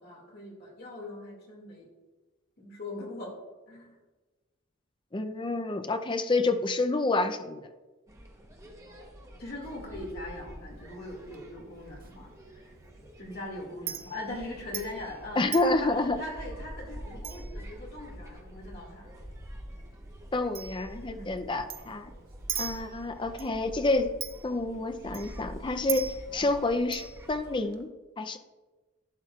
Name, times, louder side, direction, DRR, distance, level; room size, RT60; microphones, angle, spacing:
voice 1, 0.0-1.9 2.6-3.3 3.7-4.0 9.4-12.7 13.2-19.1 21.1-21.3, left 1 dB, 50° left, -1 dB, 2.2 m, -41 dB
voice 2, 5.1-7.6 15.4-16.2 20.3-22.1 22.6-24.1 24.4-27.9 28.2-28.4, left 2 dB, 25° left, 8 dB, 0.5 m, -28 dB
sound 1, 8.1-27.6, equal, 15° right, 1.0 m, -46 dB
Chink clink, 9.6-27.8, right 8 dB, 45° right, 0.7 m, -44 dB
12.0 x 9.0 x 2.4 m, 1.2 s
head